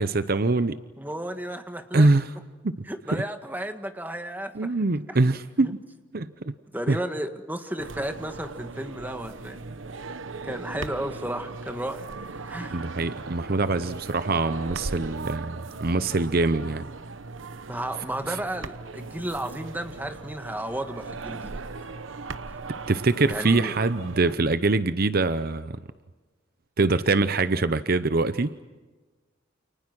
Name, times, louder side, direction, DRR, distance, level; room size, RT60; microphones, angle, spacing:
voice 1, 0.0-0.8 1.9-2.3 2.6-2.8 3.1-3.2 4.5-5.8 6.1-6.5 6.9-7.0 12.7-16.9 18.3-18.4 22.9-25.8 26.8-28.5, right 3 dB, 50° right, 12 dB, 0.8 m, -24 dB
voice 2, 1.0-2.1 2.8-4.7 5.1-5.2 5.6-5.7 6.7-9.6 10.4-12.1 12.5-12.8 17.7-21.6 22.5-22.6 23.3-23.7, right 1 dB, 10° right, 7 dB, 1.8 m, -33 dB
sound 1, 7.8-24.3, right 3 dB, 80° right, 1.1 m, -38 dB
30.0 x 28.5 x 6.1 m, 1.3 s
head